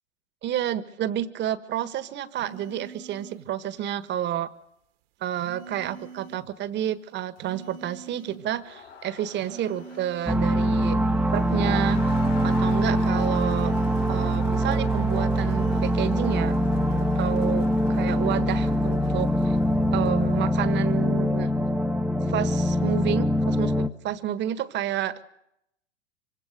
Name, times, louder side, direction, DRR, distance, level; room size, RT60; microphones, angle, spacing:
voice 1, 0.4-4.5 5.2-11.0 11.3-12.0 12.4-13.7 14.1-16.5 17.1-19.6 19.9-21.5 22.3-25.2, right 11 dB, 30° right, 14 dB, 1.5 m, -30 dB
sound 1, 2.4-3.5 5.4-6.5 7.4-8.5 9.4-10.5 11.4-12.5 13.4-14.5 15.4-16.5 17.4-17.7, right 6 dB, 55° right, 1.7 m, -44 dB
Crowd, 8.4-20.9, left 7 dB, 85° left, 4.7 m, -46 dB
sound 2, 10.3-23.9, equal, 5° right, 1.1 m, -23 dB
25.0 x 25.0 x 6.6 m, 0.80 s
hypercardioid pair, 100°, 36 cm